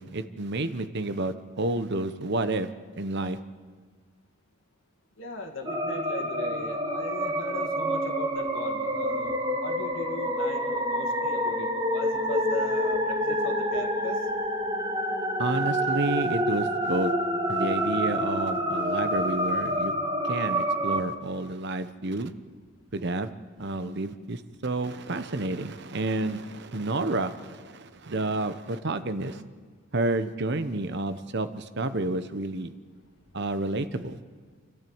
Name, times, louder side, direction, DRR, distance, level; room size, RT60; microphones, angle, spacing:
voice 1, 0.0-2.7 3.0-3.4 15.4-17.1 17.5-19.9 20.2-22.3 22.9-23.3 23.6-29.4 29.9-32.7 33.3-34.2, right 2 dB, 50° right, 11 dB, 0.9 m, -30 dB
voice 2, 5.2-14.3, left 2 dB, 60° left, 2 dB, 2.1 m, -38 dB
sound 1, 5.7-21.0, equal, 20° right, 1.6 m, -28 dB
29.0 x 12.5 x 8.8 m, 1.5 s
head